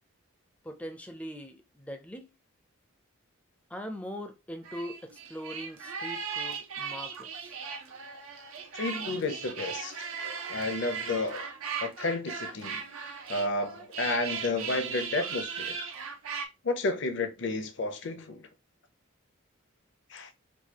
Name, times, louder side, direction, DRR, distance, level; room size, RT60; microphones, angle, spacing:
voice 1, 0.6-2.3 3.7-7.6, equal, 5° left, 0.5 m, -41 dB
sound 1, 4.6-16.5, right 6 dB, 80° right, 0.7 m, -38 dB
voice 2, 8.7-9.9 10.5-11.5 11.8-15.8 16.6-18.4 20.1-20.3, left 2 dB, 55° left, 0.6 m, -32 dB
4.6 x 2.3 x 2.8 m
head